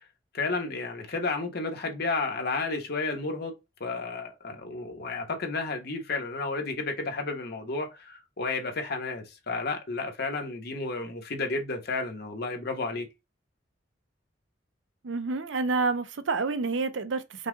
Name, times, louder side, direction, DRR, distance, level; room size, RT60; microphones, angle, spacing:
voice 1, 0.3-13.1, left 3 dB, 60° left, 1.2 m, -32 dB
voice 2, 15.0-17.5, right 4 dB, 80° right, 0.6 m, -28 dB
5.5 x 2.4 x 3.8 m
head